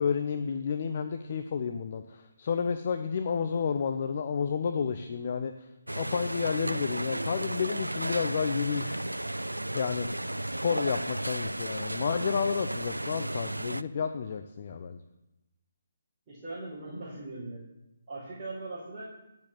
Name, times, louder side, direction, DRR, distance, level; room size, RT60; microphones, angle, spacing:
voice 1, 0.0-5.5 5.9-9.1 9.7-10.1 10.4-15.0, left 6 dB, 40° left, 8 dB, 0.6 m, -31 dB
sound 1, 5.9-13.8, right 1 dB, 85° right, 0.4 m, -34 dB
voice 2, 16.3-17.7 18.1-19.1, right 2 dB, 20° right, -11 dB, 4.5 m, -40 dB
9.4 x 7.3 x 7.5 m, 0.96 s
figure-of-eight pair, 140°, 0 cm